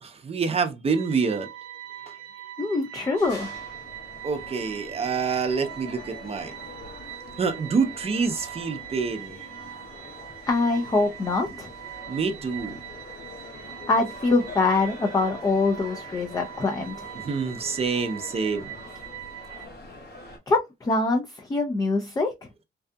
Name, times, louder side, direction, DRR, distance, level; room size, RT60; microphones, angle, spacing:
voice 1, 0.0-1.5 4.2-6.5 7.4-9.4 12.1-12.8 17.2-18.7, right 5 dB, 30° right, 0.6 m, -27 dB
sound 1, 0.9-19.7, right 12 dB, 85° right, 0.4 m, -42 dB
voice 2, 2.6-3.5 10.5-11.7 13.9-17.1 20.5-22.3, left 3 dB, 20° left, 0.4 m, -24 dB
sound 2, 3.2-20.4, left 2 dB, 55° left, 1.0 m, -44 dB
2.6 x 2.4 x 2.2 m
cardioid pair, 90°, 20 cm